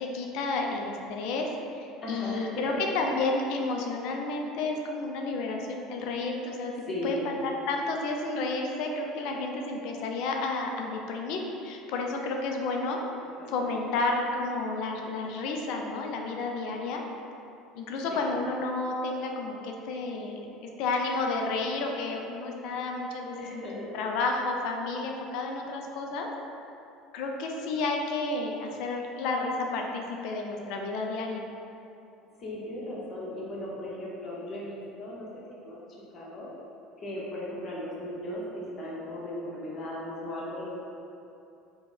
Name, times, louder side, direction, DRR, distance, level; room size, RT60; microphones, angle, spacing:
voice 1, 0.0-6.7 7.0-13.0 13.5-17.0 17.7-26.3 27.1-31.5, left 3 dB, 55° left, 1 dB, 0.4 m, -31 dB
voice 2, 2.0-2.8 3.1-3.2 6.9-7.4 13.2-13.7 18.1-18.3 23.4-23.9 32.4-35.8 36.1-36.5 37.0-40.7, left 1 dB, 35° left, -5 dB, 0.9 m, -37 dB
3.5 x 2.2 x 3.7 m, 2.7 s
figure-of-eight pair, 65°, 0 cm